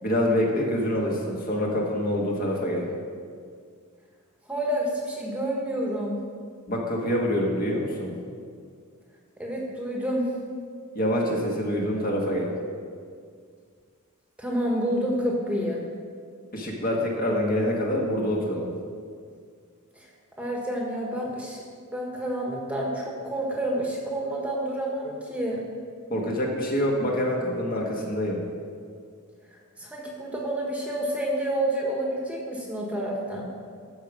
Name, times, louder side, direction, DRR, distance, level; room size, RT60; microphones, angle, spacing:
voice 1, 0.0-2.9 6.7-8.1 10.9-12.5 16.5-18.7 26.1-28.4, equal, 40° left, -1 dB, 1.5 m, -26 dB
voice 2, 4.5-6.2 9.4-10.3 14.4-15.8 20.4-21.6 21.9-25.6 29.8-33.5, right 1 dB, 5° right, -2 dB, 1.3 m, -29 dB
13.5 x 5.1 x 6.1 m, 2.1 s
head